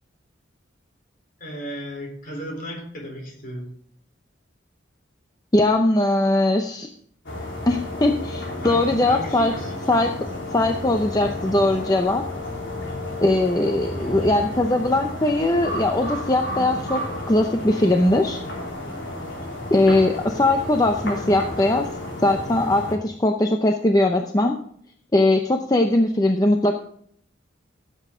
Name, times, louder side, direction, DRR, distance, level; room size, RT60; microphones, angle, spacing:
voice 1, 1.4-3.7 8.6-9.7 13.9-14.4, equal, 45° left, 1 dB, 3.9 m, -35 dB
voice 2, 5.5-6.9 7.7-9.5 9.9-10.1 10.5-12.2 13.2-18.4 19.7-21.9 22.2-24.6 25.1-26.7, left 2 dB, 20° left, 4 dB, 0.6 m, -20 dB
sound 1, 7.2-22.9, left 1 dB, 75° left, 3.9 m, -32 dB
15.5 x 7.7 x 3.8 m, 0.64 s
head